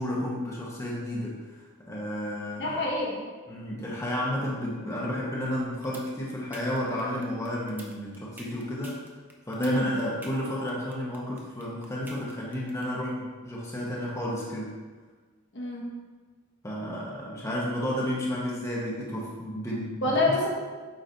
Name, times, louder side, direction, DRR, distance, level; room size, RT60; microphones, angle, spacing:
voice 1, 0.0-1.6 1.9-2.8 3.5-9.0 9.5-14.7 16.6-20.4, left 1 dB, 15° left, -5 dB, 0.9 m, -32 dB
voice 2, 2.6-3.3 9.6-9.9 15.5-15.9 20.0-20.5, left 2 dB, 55° left, -2 dB, 1.2 m, -27 dB
sound 1, 5.6-12.8, right 1 dB, 10° right, 0.6 m, -46 dB
8.0 x 4.9 x 2.7 m, 1.4 s
head